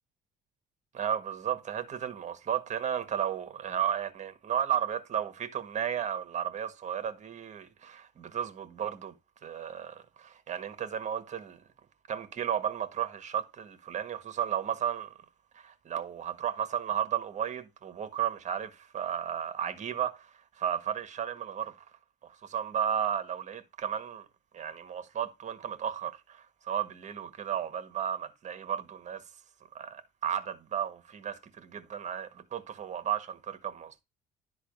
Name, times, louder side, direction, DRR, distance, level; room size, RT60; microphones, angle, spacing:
voice 1, 0.9-9.1 9.4-11.6 12.1-15.1 15.5-20.3 20.5-21.7 22.4-24.2 24.5-29.2 29.7-34.0, right 9 dB, 45° right, 1.6 m, -34 dB
11.5 x 4.1 x 5.1 m
cardioid pair, 110°, 17 cm